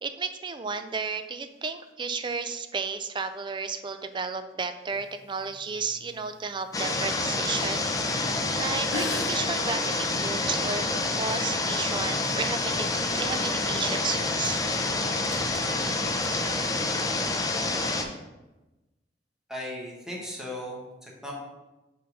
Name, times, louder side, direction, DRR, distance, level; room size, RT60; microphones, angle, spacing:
voice 1, 0.0-7.9 8.5-10.8 11.2-12.9 13.1-14.6, right 5 dB, 25° right, 9 dB, 0.4 m, -33 dB
sound 1, 4.9-7.6 8.2-8.4 8.7-10.7, left 3 dB, 80° left, 0.6 m, -40 dB
sound 2, 6.7-18.0, left 2 dB, 20° left, 0.6 m, -28 dB
sound 3, 12.1-12.9 13.2-13.5 13.8-17.0, right 1 dB, 85° right, 1.8 m, -46 dB
voice 2, 19.5-21.3, left 1 dB, 5° right, -3 dB, 1.4 m, -37 dB
5.4 x 3.9 x 5.5 m, 1.1 s
head